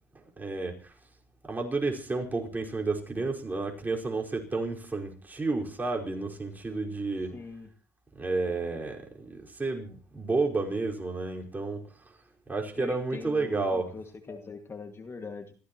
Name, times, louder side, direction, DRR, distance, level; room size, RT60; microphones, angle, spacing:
voice 1, 0.1-0.9 1.4-7.4 8.1-11.9 12.5-13.9, right 3 dB, 20° right, 5.1 m, -31 dB
voice 2, 7.3-7.7 12.7-15.5, left 4 dB, 30° left, 2.2 m, -42 dB
27.0 x 15.5 x 3.1 m
supercardioid pair, 75°, 8 cm